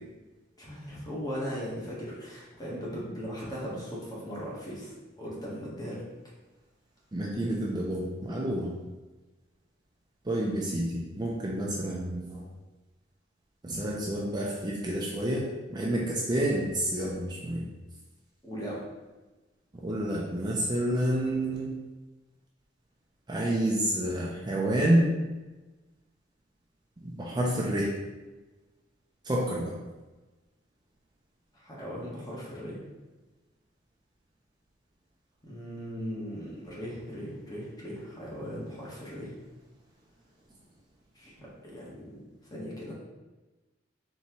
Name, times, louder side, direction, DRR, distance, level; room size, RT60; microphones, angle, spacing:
voice 1, 0.6-6.0 18.4-18.8 31.5-32.8 35.4-39.3 41.1-42.2 42.5-42.9, equal, 20° left, -6 dB, 1.2 m, -38 dB
voice 2, 7.1-8.7 10.3-12.4 13.6-15.4 15.7-17.6 19.8-21.7 23.3-25.1 27.0-27.9 29.2-29.7, right 1 dB, 20° right, -3 dB, 0.5 m, -29 dB
4.2 x 3.5 x 3.0 m, 1.2 s
head